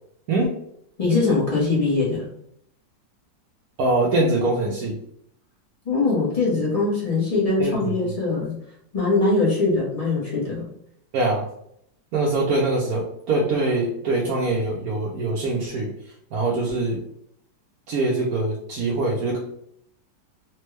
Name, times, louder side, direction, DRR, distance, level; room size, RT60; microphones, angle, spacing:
voice 1, 1.0-2.3 5.8-8.5 8.9-10.6, left 3 dB, 30° left, -6 dB, 0.7 m, -22 dB
voice 2, 3.8-5.0 7.6-8.1 11.1-11.4 12.1-15.9 16.3-17.0 17.9-19.4, right 2 dB, 70° right, -4 dB, 1.0 m, -23 dB
3.4 x 2.2 x 3.1 m, 0.71 s
omnidirectional pair, 2.0 m